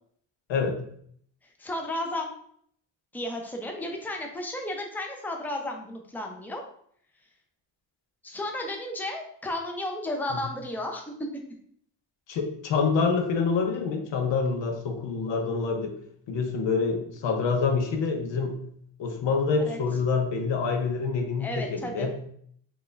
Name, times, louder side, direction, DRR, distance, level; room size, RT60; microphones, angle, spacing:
voice 1, 0.5-0.8 10.3-10.4 12.3-15.9 16.3-18.6 19.0-22.2, left 5 dB, 75° left, 4 dB, 0.8 m, -26 dB
voice 2, 1.6-2.3 3.1-6.6 8.2-11.1 19.6-19.8 21.4-22.1, left 1 dB, 5° left, 2 dB, 0.6 m, -33 dB
4.1 x 2.5 x 3.3 m, 0.64 s
cardioid pair, 85°, 44 cm